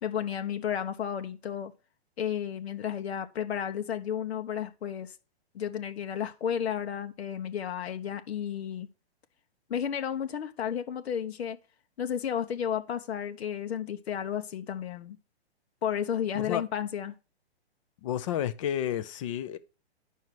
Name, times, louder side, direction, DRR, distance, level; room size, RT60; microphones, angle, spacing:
voice 1, 0.0-1.7 2.2-5.1 5.5-8.9 9.7-11.6 12.0-15.2 15.8-17.1, left 8 dB, 70° left, 1.0 m, -32 dB
voice 2, 18.0-19.6, left 10 dB, 30° left, 0.6 m, -31 dB
9.4 x 5.6 x 4.6 m
hypercardioid pair, 150°, 33 cm